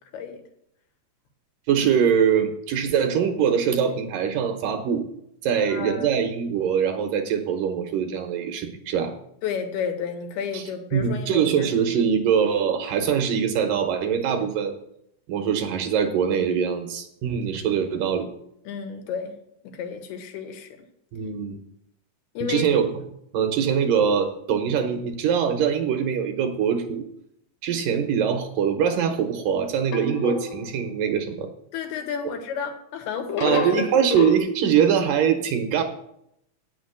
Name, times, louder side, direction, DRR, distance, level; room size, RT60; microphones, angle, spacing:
voice 1, 1.7-5.0 5.4-9.1 10.5-10.6 10.9-14.7 15.3-18.3 21.1-21.6 22.5-23.0 23.3-27.1 27.6-31.5 33.4-35.8, right 7 dB, 70° right, 6 dB, 2.3 m, -23 dB
voice 2, 5.7-6.1 9.4-11.7 14.4-14.5 18.7-19.4 19.6-20.7 22.3-22.7 31.7-33.9, left 7 dB, 85° left, 4 dB, 3.3 m, -31 dB
sound 1, 29.9-30.9 33.3-34.4, left 3 dB, 55° left, 1.9 m, -28 dB
9.0 x 6.6 x 7.8 m, 0.75 s
omnidirectional pair, 4.4 m